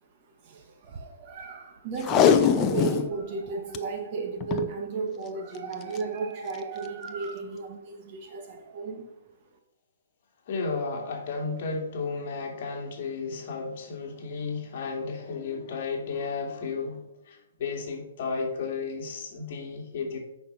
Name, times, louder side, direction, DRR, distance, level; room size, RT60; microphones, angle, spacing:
voice 1, 0.0-9.2, right 4 dB, 30° right, 1.3 m, -34 dB
Packing tape duct tape, 2.0-3.1 3.5-3.6 3.7-3.8 4.4-4.7 5.7-6.0 6.5-6.6, left 8 dB, 20° left, 0.5 m, -22 dB
voice 2, 10.5-20.2, left 4 dB, 40° left, 2.4 m, -33 dB
8.6 x 5.9 x 5.5 m
hypercardioid pair, 165°, 0 cm